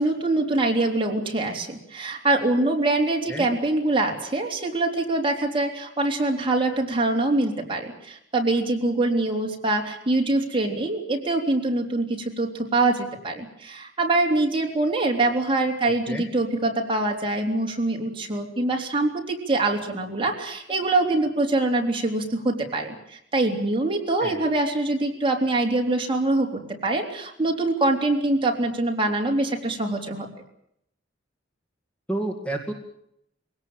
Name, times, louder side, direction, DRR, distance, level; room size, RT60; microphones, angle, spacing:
voice 1, 0.0-30.3, right 2 dB, 30° right, 1 dB, 3.6 m, -24 dB
voice 2, 32.1-32.7, right 1 dB, 5° left, 3 dB, 2.2 m, -29 dB
23.0 x 17.5 x 9.0 m, 0.74 s
head